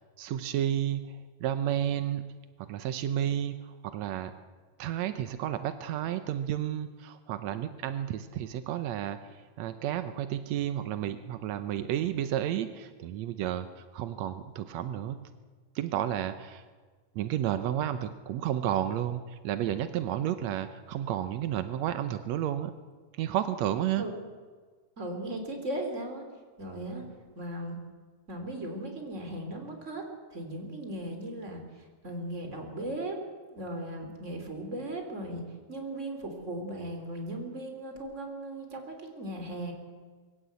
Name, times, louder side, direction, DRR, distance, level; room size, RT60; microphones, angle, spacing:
voice 1, 0.0-2.2 2.6-4.3 4.8-15.2 15.7-16.6 17.1-22.7 23.1-24.0, right 11 dB, 90° right, 11 dB, 1.5 m, -32 dB
voice 2, 25.0-26.2 26.6-27.1 27.3-27.8 28.3-33.2 33.5-39.7, right 1 dB, 20° right, 4 dB, 3.4 m, -37 dB
23.0 x 16.5 x 8.3 m, 1.4 s
omnidirectional pair, 4.3 m